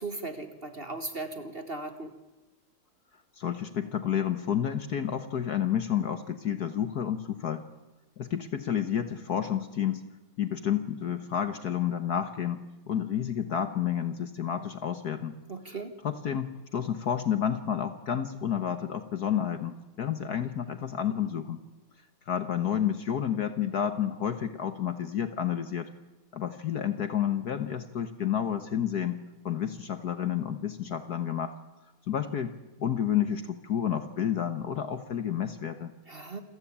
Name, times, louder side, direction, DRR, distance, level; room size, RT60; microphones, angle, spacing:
voice 1, 0.0-2.1 15.5-15.9 36.1-36.4, right 3 dB, 30° right, 8 dB, 1.7 m, -37 dB
voice 2, 3.4-7.6 8.2-10.0 10.4-15.4 15.7-15.8 16.0-21.6 22.3-25.9 26.3-29.2 29.4-31.5 32.1-32.5 32.8-35.9, left 9 dB, 55° left, 10 dB, 1.5 m, -30 dB
27.5 x 15.5 x 8.8 m, 1.0 s
omnidirectional pair, 2.3 m